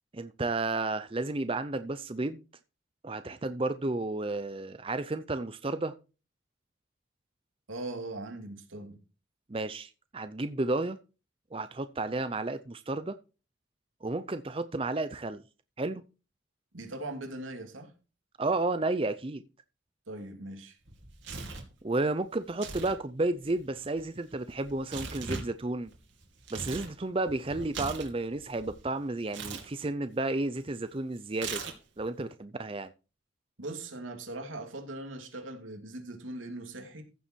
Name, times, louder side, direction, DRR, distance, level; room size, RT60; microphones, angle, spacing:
voice 1, 0.1-2.4 3.0-5.9 9.5-11.0 11.5-13.2 14.0-15.4 15.8-16.0 18.4-19.4 21.8-25.9 26.5-31.6 32.0-32.9, right 2 dB, 30° right, 0.6 m, -32 dB
voice 2, 7.7-9.0 16.7-17.9 20.1-20.8 33.6-37.0, right 2 dB, 85° right, 2.7 m, -40 dB
Tearing, 20.9-21.7 22.5-23.0 23.2-26.9 27.3-28.8 29.3-29.7 31.3-32.0, right 4 dB, 70° right, 2.9 m, -40 dB
15.0 x 7.1 x 4.5 m
head